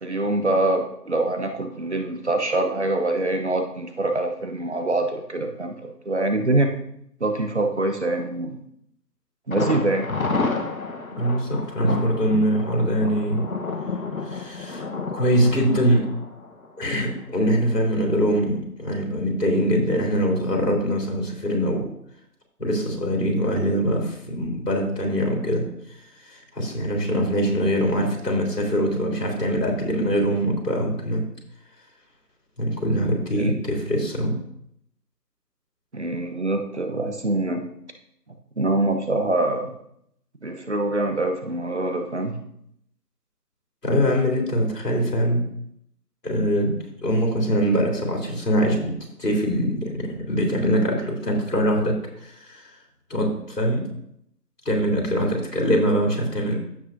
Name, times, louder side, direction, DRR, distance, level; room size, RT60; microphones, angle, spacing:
voice 1, 0.0-6.7 7.2-8.6 9.5-10.1 11.8-12.1 12.3-12.4 33.4-33.5 35.9-37.6 38.6-39.8 40.4-42.4, right 2 dB, 45° right, 5 dB, 1.0 m, -24 dB
Thunder, 9.5-17.3 17.6-17.7 18.1-18.2, left 3 dB, 55° left, 1.2 m, -30 dB
voice 2, 11.2-13.5 14.2-14.8 15.1-16.0 16.8-21.8 22.6-31.2 32.6-34.4 43.8-45.5 46.2-46.8 47.0-48.9 49.2-52.8 53.1-53.9 54.6-56.6, equal, 75° left, 0 dB, 3.4 m, -23 dB
14.5 x 6.2 x 2.7 m, 0.74 s
figure-of-eight pair, 160°, 49 cm